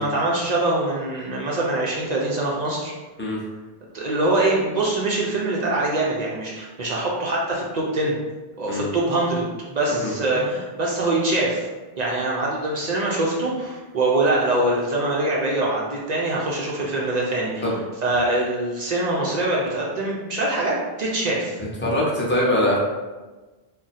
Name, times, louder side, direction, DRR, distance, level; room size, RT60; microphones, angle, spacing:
voice 1, 0.0-2.9 3.9-8.1 8.6-11.7 12.0-17.6 18.0-21.6, right 2 dB, 55° right, -4 dB, 0.5 m, -23 dB
voice 2, 21.8-22.8, left 1 dB, 15° left, -5 dB, 0.4 m, -22 dB
2.5 x 2.1 x 4.0 m, 1.2 s
omnidirectional pair, 1.2 m